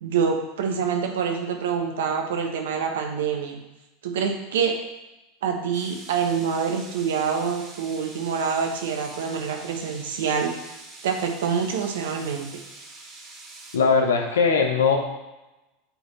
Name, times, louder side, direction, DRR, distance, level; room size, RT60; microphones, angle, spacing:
voice 1, 0.0-3.6 4.0-4.7 5.4-10.5 11.0-12.5, right 6 dB, 75° right, 3 dB, 1.1 m, -26 dB
sound 1, 5.7-13.8, right 2 dB, 40° right, 2.1 m, -44 dB
voice 2, 13.7-15.0, left 5 dB, 80° left, 3 dB, 1.1 m, -20 dB
10.0 x 3.9 x 3.2 m, 1.0 s
hypercardioid pair, 90°, 0 cm